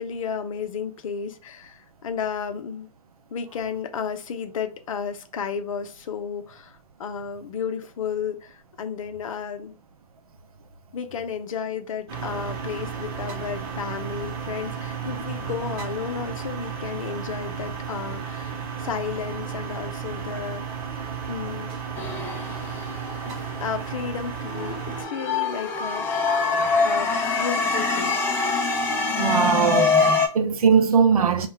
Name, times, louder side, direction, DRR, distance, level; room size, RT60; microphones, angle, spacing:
voice 1, 0.0-2.9 3.3-9.8 10.9-20.8 21.3-21.7 23.2-26.5 26.8-28.2, left 7 dB, 60° left, 0.6 m, -33 dB
sound 1, 12.1-25.0, right 7 dB, 40° right, 1.0 m, -33 dB
sound 2, 22.0-23.9 24.4-30.3, left 4 dB, 10° left, 0.5 m, -24 dB
voice 2, 29.2-31.5, right 6 dB, 70° right, 0.6 m, -20 dB
2.3 x 2.1 x 3.6 m
hypercardioid pair, 130°, 19 cm